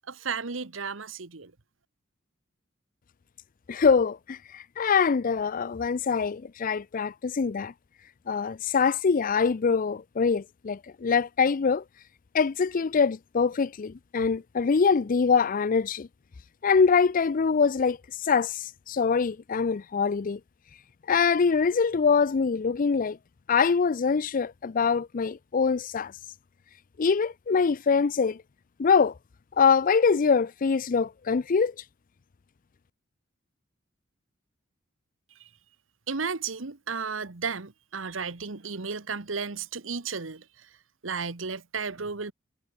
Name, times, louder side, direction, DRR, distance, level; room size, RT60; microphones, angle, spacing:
voice 1, 0.1-1.5 35.3-35.5 36.1-40.8 41.0-42.3, right 5 dB, 85° right, 1.4 m, -34 dB
voice 2, 3.7-7.7 8.3-11.8 12.3-16.1 16.6-20.4 21.1-23.2 23.5-26.1 27.0-28.4 28.8-29.1 29.6-31.7, left 5 dB, 45° left, 0.4 m, -24 dB
head